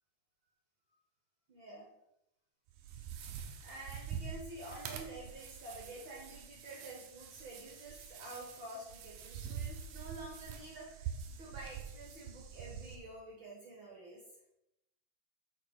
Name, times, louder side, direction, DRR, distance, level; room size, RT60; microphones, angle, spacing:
voice 1, 1.5-1.9 3.6-11.1 11.4-14.2, right 1 dB, 50° right, -2 dB, 1.5 m, -49 dB
sound 1, 2.7-13.0, right 7 dB, 75° right, 1.8 m, -45 dB
6.9 x 4.9 x 4.9 m, 0.84 s
omnidirectional pair, 4.0 m